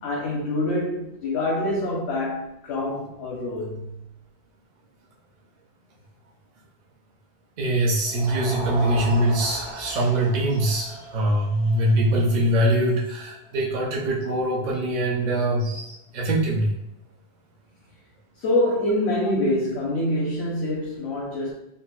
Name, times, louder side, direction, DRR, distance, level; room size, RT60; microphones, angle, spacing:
voice 1, 0.0-4.0 18.4-21.5, left 1 dB, 85° left, -3 dB, 0.9 m, -25 dB
voice 2, 7.6-16.7, right 1 dB, 55° right, -3 dB, 0.5 m, -23 dB
sound 1, 8.0-14.3, right 1 dB, 85° right, 1.1 m, -37 dB
3.9 x 2.2 x 2.3 m, 0.82 s
omnidirectional pair, 1.1 m